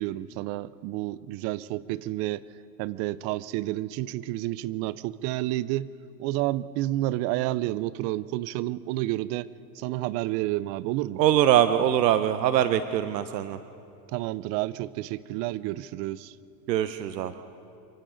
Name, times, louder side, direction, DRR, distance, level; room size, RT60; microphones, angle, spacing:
voice 1, 0.0-2.4 2.8-5.9 6.2-9.5 9.7-11.2 14.1-16.4, right 16 dB, 35° right, 19 dB, 0.4 m, -30 dB
voice 2, 11.2-13.6 16.7-17.3, right 11 dB, 90° right, 11 dB, 0.9 m, -22 dB
28.0 x 24.5 x 3.9 m, 2.6 s
supercardioid pair, 120°, 48 cm